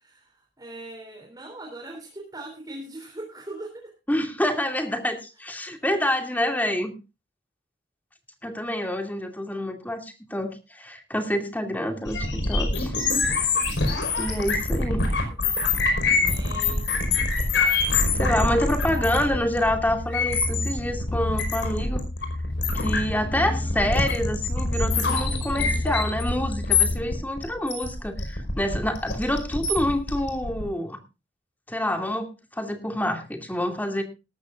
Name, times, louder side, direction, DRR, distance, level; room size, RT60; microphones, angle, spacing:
voice 1, 0.0-3.9 15.3-16.9 23.2-23.9, right 1 dB, 20° right, 1 dB, 3.4 m, -41 dB
voice 2, 4.1-6.9 8.4-12.9 14.2-15.0 18.1-22.0 22.7-31.0 31.7-34.0, left 1 dB, 10° left, 4 dB, 2.5 m, -27 dB
sound 1, 12.1-30.6, left 3 dB, 80° left, 5.3 m, -25 dB
sound 2, 15.8-27.0, left 1 dB, 45° left, 0.9 m, -32 dB
19.0 x 13.5 x 2.5 m, 0.28 s
head